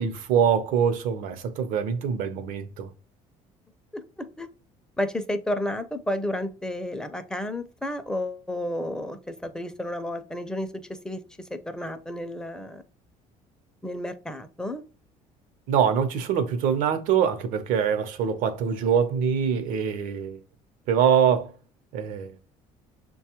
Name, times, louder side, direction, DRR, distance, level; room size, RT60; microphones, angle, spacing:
voice 1, 0.0-2.9 15.7-20.4 20.9-21.5 21.9-22.4, right 7 dB, 75° right, 0.7 m, -24 dB
voice 2, 5.0-11.2 11.7-12.8 13.8-14.8, left 1 dB, 5° left, 0.5 m, -31 dB
6.7 x 2.3 x 2.9 m
cardioid pair, 130°, 14 cm